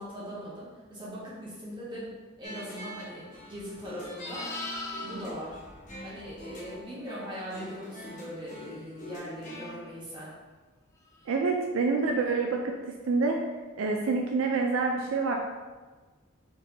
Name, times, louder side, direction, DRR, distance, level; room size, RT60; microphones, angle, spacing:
voice 1, 0.0-4.5 5.0-5.6 6.0-10.3, equal, 25° right, -8 dB, 1.4 m, -40 dB
sound 1, 2.4-9.8, left 1 dB, 35° left, 0.9 m, -44 dB
Livestock farm animals working animals, 3.5-6.8 11.1-11.4, left 2 dB, 15° left, 0.4 m, -41 dB
voice 2, 11.3-12.7 13.1-13.4 13.8-15.3, right 4 dB, 70° right, 2 dB, 0.4 m, -27 dB
4.2 x 3.5 x 2.9 m, 1.3 s
head